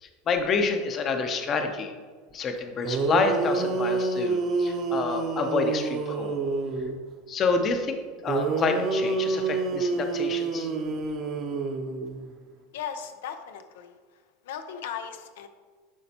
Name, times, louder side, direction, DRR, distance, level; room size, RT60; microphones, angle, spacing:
voice 1, 0.0-1.9 2.3-6.4 7.3-8.0 8.2-10.7, left 4 dB, 30° left, 6 dB, 0.6 m, -28 dB
sound 1, 2.6-2.7 2.8-7.0 8.3-12.3, right 4 dB, 35° right, 0.7 m, -28 dB
voice 2, 12.7-14.0 14.4-15.5, left 8 dB, 90° left, 8 dB, 0.6 m, -37 dB
11.0 x 4.2 x 2.9 m, 1.5 s
supercardioid pair, 150°, 0 cm